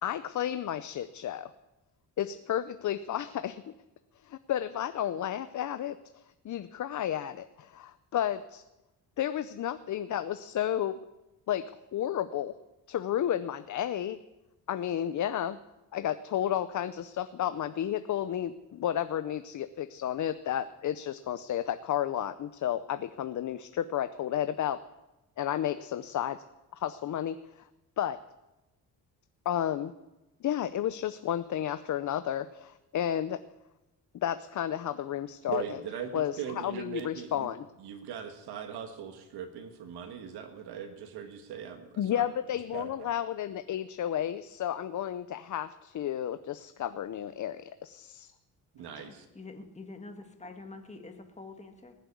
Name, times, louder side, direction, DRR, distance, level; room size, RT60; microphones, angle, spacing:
voice 1, 0.0-1.5 2.2-3.6 4.2-6.0 6.4-8.6 9.2-11.1 11.5-11.6 11.9-12.5 12.9-14.2 14.7-15.6 15.9-24.8 25.4-26.4 26.7-27.4 28.0-28.2 29.5-29.9 30.4-33.4 34.1-35.6 36.1-37.6 42.0-48.3 49.0-49.1, left 10 dB, 50° left, 12 dB, 0.6 m, -32 dB
voice 2, 35.5-37.5 37.8-42.3 42.7-43.1 48.7-49.2, right 8 dB, 90° right, 5 dB, 1.7 m, -40 dB
voice 3, 49.4-51.9, left 3 dB, 20° left, 5 dB, 1.9 m, -46 dB
19.5 x 7.6 x 8.3 m, 1.0 s
cardioid pair, 110°, 38 cm